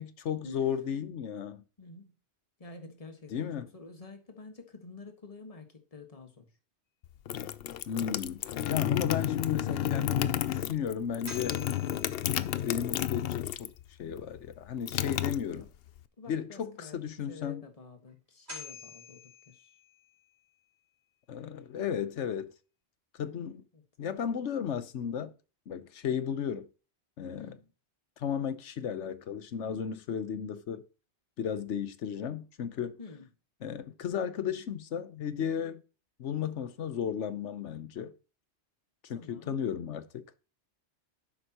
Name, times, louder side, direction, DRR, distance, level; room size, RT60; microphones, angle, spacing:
voice 1, 0.0-1.6 3.3-3.7 7.9-11.6 12.6-13.7 14.0-15.7 16.3-17.7 21.3-22.5 23.1-23.7 24.0-25.3 25.7-26.7 27.2-27.5 28.2-30.8 31.4-33.0 33.6-35.8 36.2-38.1 39.0-40.3, left 8 dB, 90° left, 1.2 m, -34 dB
voice 2, 1.8-2.1 2.6-6.5 15.5-15.6 16.2-17.0 17.3-19.7 23.7-23.8 27.4-27.7 33.0-33.3 39.1-39.6, left 4 dB, 30° left, 1.6 m, -49 dB
sound 1, 7.0-13.8 14.1-16.0, left 11 dB, 65° left, 0.7 m, -32 dB
sound 2, 11.0-13.1 18.1-18.2 18.5-20.4, left 3 dB, 65° right, 4.1 m, -48 dB
10.5 x 7.9 x 2.9 m
omnidirectional pair, 1.2 m